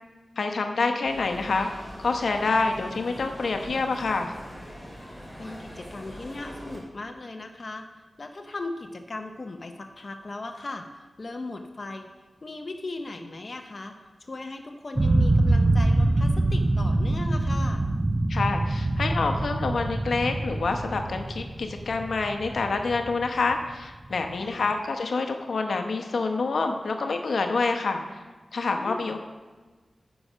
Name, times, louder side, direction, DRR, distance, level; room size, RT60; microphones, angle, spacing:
voice 1, 0.4-1.7 2.0-4.3 18.3-28.2 28.5-29.2, left 3 dB, 85° left, 5 dB, 0.8 m, -27 dB
sound 1, 1.0-6.8, equal, 10° right, 2.7 m, -42 dB
voice 2, 5.4-7.9 8.2-12.1 12.4-17.8 24.3-24.7 28.7-29.2, left 2 dB, 45° left, 4 dB, 0.7 m, -38 dB
sound 2, 15.0-23.8, right 2 dB, 30° right, 0.5 m, -24 dB
9.6 x 6.2 x 5.5 m, 1.3 s
wide cardioid pair, 90°, 0 cm